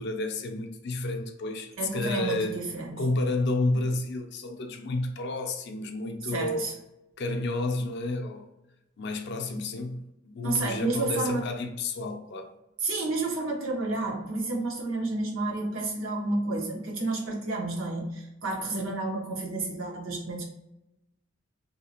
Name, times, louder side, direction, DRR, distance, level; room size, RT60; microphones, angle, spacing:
voice 1, 0.0-2.6 3.0-6.7 7.2-8.5 9.0-12.5, left 2 dB, 55° left, 4 dB, 0.5 m, -30 dB
voice 2, 1.8-3.1 6.2-6.7 10.4-11.5 12.8-20.5, right 2 dB, 85° right, 0 dB, 0.8 m, -30 dB
2.7 x 2.5 x 2.8 m, 0.92 s
head